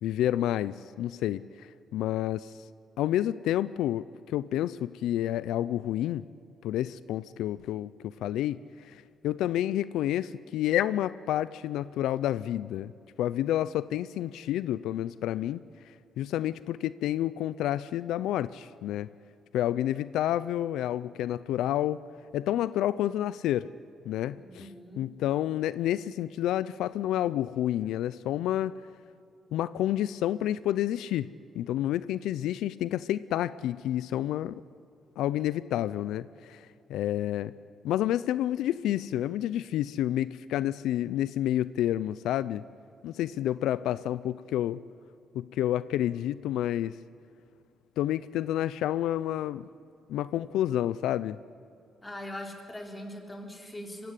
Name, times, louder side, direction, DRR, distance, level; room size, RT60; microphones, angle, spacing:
voice 1, 0.0-2.5 3.0-6.2 6.6-12.9 13.2-19.1 19.5-22.0 22.3-23.7 24.0-24.7 25.0-28.7 29.5-31.3 31.5-34.6 35.2-37.5 37.8-42.6 43.0-44.8 45.3-47.0 48.0-49.7 50.1-51.4, left 12 dB, 85° left, 17 dB, 0.5 m, -29 dB
voice 2, 24.3-25.1 52.0-54.1, left 1 dB, 15° left, 3 dB, 3.9 m, -41 dB
23.5 x 16.5 x 9.9 m, 2.6 s
cardioid pair, 90°, 0 cm